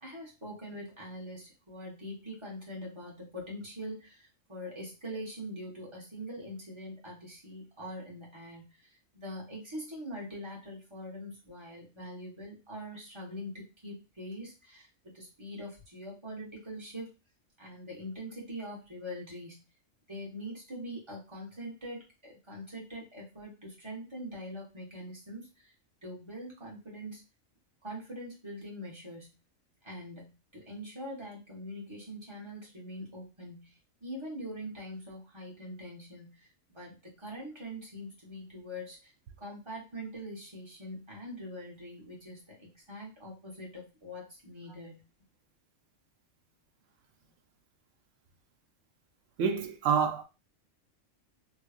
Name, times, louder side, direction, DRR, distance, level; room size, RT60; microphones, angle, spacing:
voice 1, 0.0-14.9 15.1-17.1 17.6-19.6 20.1-25.7 26.0-27.2 27.8-29.3 29.8-33.7 34.0-39.1 39.4-45.0, equal, 20° right, 1.4 m, -43 dB
voice 2, 49.4-50.2, right 6 dB, 75° right, 1.0 m, -27 dB
3.2 x 3.2 x 2.5 m
omnidirectional pair, 1.3 m